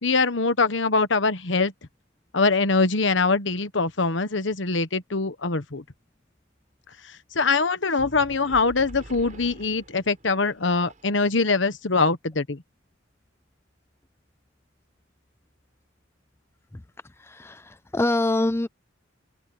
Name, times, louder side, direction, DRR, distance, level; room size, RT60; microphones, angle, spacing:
voice 1, 0.0-1.7 2.3-5.8 7.3-12.6, left 3 dB, 70° left, 1.3 m, -23 dB
sound 1, 8.0-11.5, right 1 dB, 40° right, 5.7 m, -45 dB
voice 2, 17.2-18.7, left 2 dB, 15° left, 0.5 m, -25 dB
head